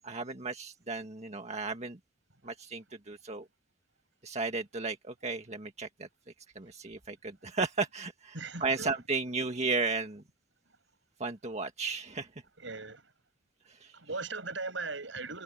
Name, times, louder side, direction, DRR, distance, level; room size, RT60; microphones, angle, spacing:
voice 1, 0.0-2.0 2.4-3.4 4.2-6.1 6.6-8.4 8.6-10.2 11.2-12.3 13.8-13.9, right 4 dB, 35° right, 1.8 m, -34 dB
voice 2, 8.3-8.9 12.6-13.0 13.9-15.4, right 3 dB, 80° right, 7.6 m, -38 dB
head